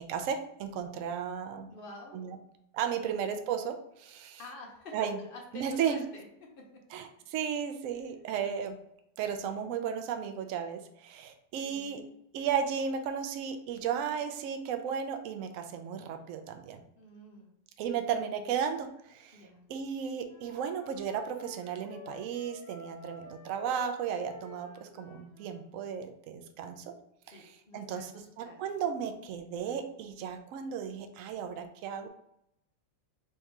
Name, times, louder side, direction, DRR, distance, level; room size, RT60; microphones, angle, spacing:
voice 1, 0.0-1.7 2.1-2.4 2.7-4.4 4.9-5.2 5.5-6.0 6.9-8.8 9.2-12.0 12.3-16.8 17.8-19.4 19.7-26.9 27.3-28.1 28.4-32.1, right 7 dB, 85° right, 6 dB, 0.7 m, -34 dB
voice 2, 1.7-2.3 4.4-6.2 11.6-12.1 16.9-17.5 19.3-19.6 27.3-28.7, left 2 dB, 65° left, 0 dB, 0.5 m, -48 dB
Wind instrument woodwind instrument, 20.3-25.6, left 4 dB, 80° left, 1.4 m, -51 dB
3.5 x 2.7 x 4.5 m, 0.77 s
omnidirectional pair, 2.0 m